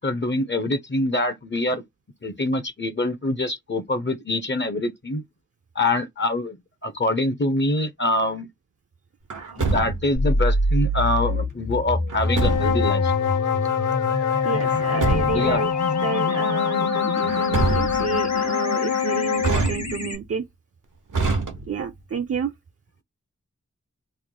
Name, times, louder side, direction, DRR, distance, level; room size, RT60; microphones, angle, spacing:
voice 1, 0.0-1.8 2.2-5.2 5.7-8.5 9.6-13.3 15.3-15.6, left 2 dB, 40° left, 0.6 m, -25 dB
Truck, 9.3-10.3 12.1-12.9 14.6-15.6 17.2-18.2 19.4-20.2 21.1-22.0, right 3 dB, 85° right, 0.9 m, -26 dB
sound 1, 10.2-20.2, left 1 dB, 60° left, 1.0 m, -27 dB
sound 2, 12.2-19.6, left 8 dB, 85° left, 0.7 m, -24 dB
voice 2, 14.4-15.7 16.0-20.5 21.7-22.5, right 6 dB, 50° right, 0.5 m, -30 dB
3.1 x 2.1 x 3.7 m
wide cardioid pair, 55°, 30 cm